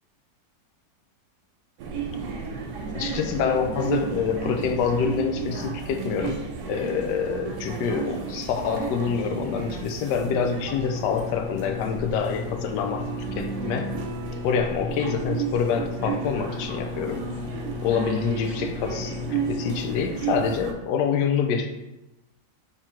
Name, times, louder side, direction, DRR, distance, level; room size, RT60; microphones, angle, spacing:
sound 1, 1.8-20.7, right 6 dB, 80° right, 1.3 m, -33 dB
voice 1, 2.9-6.4 6.7-13.1 13.4-13.9 14.4-17.3 17.8-21.7, left 6 dB, 75° left, 5 dB, 1.1 m, -26 dB
sound 2, 10.6-20.0, left 5 dB, 45° left, 0.7 m, -36 dB
3.7 x 3.0 x 4.3 m, 0.93 s
omnidirectional pair, 1.9 m